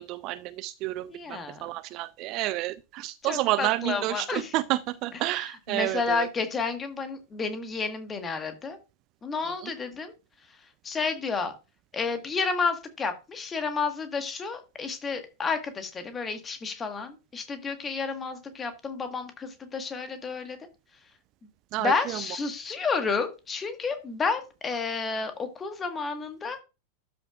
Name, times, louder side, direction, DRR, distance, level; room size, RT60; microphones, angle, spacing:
voice 1, 0.0-6.3 9.5-9.6 21.7-22.2, right 17 dB, 40° right, 0.4 m, -30 dB
voice 2, 1.1-1.7 3.2-4.5 5.3-8.8 9.2-10.1 10.8-11.5 11.9-20.6 21.8-26.6, left 4 dB, 20° left, 1.5 m, -31 dB
12.5 x 5.9 x 2.4 m
figure-of-eight pair, 90°, 0 cm